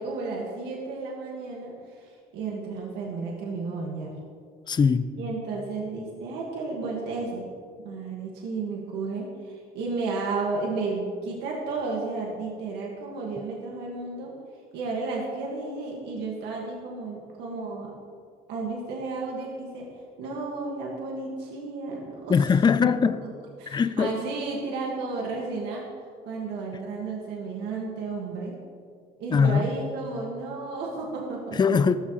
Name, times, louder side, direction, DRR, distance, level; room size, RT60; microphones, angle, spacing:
voice 1, 0.0-4.1 5.2-7.5 7.8-14.3 14.7-17.9 18.5-22.5 23.6-25.9 26.3-28.6 29.2-31.6, right 3 dB, 90° right, 2.0 m, -33 dB
voice 2, 4.7-5.1 22.3-23.2 23.7-24.1 29.3-29.7 31.6-32.0, left 6 dB, 25° left, 0.5 m, -21 dB
14.0 x 13.5 x 3.2 m
cardioid pair, 110°, 17 cm